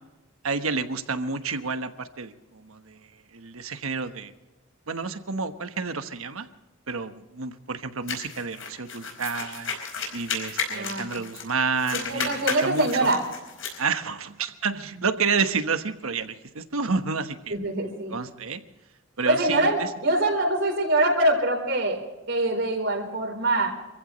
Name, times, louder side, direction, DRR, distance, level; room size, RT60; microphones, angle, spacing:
voice 1, 0.4-4.3 4.9-6.5 6.9-9.7 10.1-13.2 13.8-17.6 18.1-18.6 19.2-19.9, right 4 dB, 85° right, 9 dB, 1.2 m, -30 dB
sound 1, 8.1-11.5 11.8-13.8, left 5 dB, 70° left, 4.9 m, -33 dB
voice 2, 10.7-11.2 11.9-13.2 17.5-18.1 19.3-22.0 22.3-23.8, right 2 dB, 60° right, 1 dB, 4.2 m, -24 dB
26.5 x 15.5 x 3.2 m, 1.1 s
head